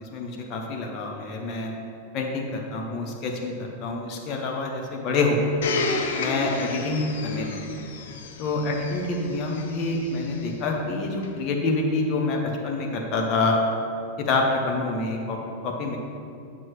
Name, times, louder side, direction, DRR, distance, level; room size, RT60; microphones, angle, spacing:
voice 1, 0.0-1.7 2.1-5.5 6.1-7.8 8.4-13.6 14.2-15.4 15.6-16.0, left 3 dB, 40° left, 1 dB, 1.1 m, -27 dB
Domestic sounds home sounds, 5.6-10.5 11.2-11.3, left 3 dB, 60° left, 0.7 m, -31 dB
9.1 x 6.0 x 3.1 m, 2.5 s
figure-of-eight pair, 90°, 0 cm